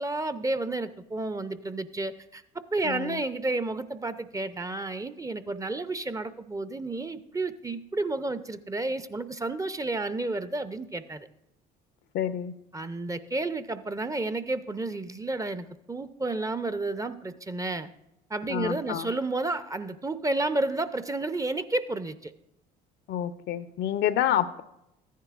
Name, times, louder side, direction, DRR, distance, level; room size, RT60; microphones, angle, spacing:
voice 1, 0.0-11.3 12.7-17.9 18.3-22.3, right 2 dB, 15° right, 12 dB, 0.5 m, -31 dB
voice 2, 2.8-3.2 12.1-12.5 18.5-19.1 23.1-24.6, left 10 dB, 60° left, 13 dB, 0.6 m, -28 dB
14.0 x 10.0 x 2.4 m, 0.85 s
hypercardioid pair, 65°, 20 cm